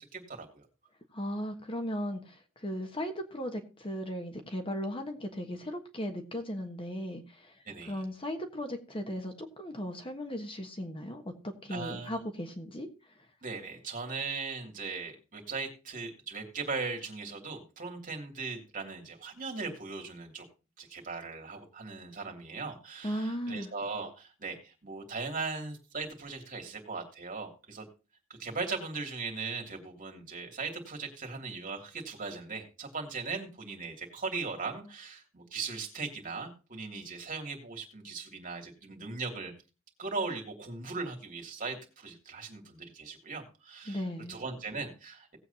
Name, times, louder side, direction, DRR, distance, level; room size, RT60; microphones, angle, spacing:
voice 1, 0.1-0.6 7.7-8.0 11.7-12.2 13.4-20.4 20.8-27.8 28.4-39.5 40.0-45.4, right 4 dB, 40° right, 2 dB, 2.9 m, -39 dB
voice 2, 1.1-12.9 23.0-23.7 43.9-44.4, equal, 25° left, 6 dB, 1.3 m, -37 dB
18.0 x 8.1 x 2.8 m, 0.32 s
head